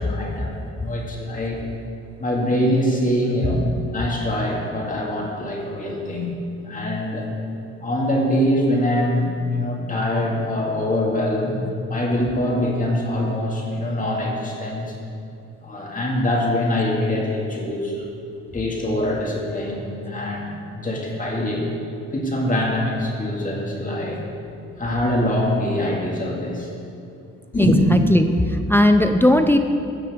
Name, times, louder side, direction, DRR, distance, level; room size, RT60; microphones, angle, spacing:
voice 1, 0.0-1.6 2.2-3.7 3.9-6.3 6.6-7.3 7.8-11.6 11.9-14.9 15.6-18.1 18.5-21.7 22.1-24.2 24.8-26.7 27.5-27.8, left 1 dB, 25° left, -2 dB, 2.1 m, -23 dB
voice 2, 27.6-29.6, left 1 dB, 10° left, 6 dB, 0.4 m, -17 dB
13.0 x 7.4 x 3.6 m, 2.5 s
cardioid pair, 90°, 30 cm